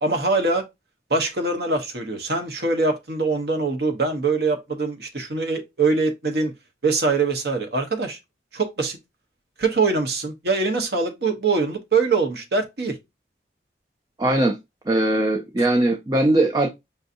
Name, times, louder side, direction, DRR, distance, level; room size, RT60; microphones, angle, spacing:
voice 1, 0.0-0.6 1.1-6.5 6.8-8.2 8.5-9.0 9.6-13.0 15.6-15.7, right 3 dB, 60° right, 0.9 m, -23 dB
voice 2, 14.2-14.6 14.9-16.7, right 1 dB, 20° right, 0.4 m, -20 dB
5.4 x 2.7 x 2.5 m
head